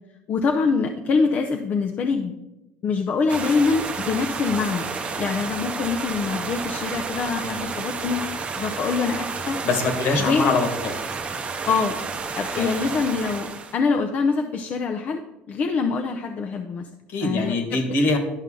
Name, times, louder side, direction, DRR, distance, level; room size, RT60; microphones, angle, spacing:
voice 1, 0.3-2.4 2.8-8.2 8.5-9.6 10.1-10.6 11.7-13.5 13.7-15.2 15.5-16.9 17.2-17.8, left 4 dB, 45° left, 3 dB, 0.6 m, -24 dB
sound 1, 3.3-13.8, right 4 dB, 30° right, 0.7 m, -31 dB
voice 2, 9.6-10.9 12.5-12.7 17.1-18.2, left 3 dB, 60° left, 5 dB, 1.6 m, -23 dB
10.5 x 5.4 x 3.7 m, 1.0 s
cardioid pair, 115°, 4 cm